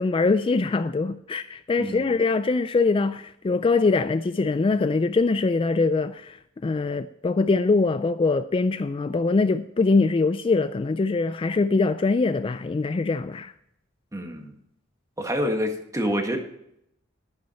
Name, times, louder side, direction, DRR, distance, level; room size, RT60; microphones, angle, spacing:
voice 1, 0.0-6.4 6.6-13.5, left 3 dB, 25° left, 0.3 m, -23 dB
voice 2, 1.8-2.1 14.1-14.5 15.2-16.4, equal, 15° right, 1.6 m, -27 dB
10.5 x 10.5 x 4.3 m
head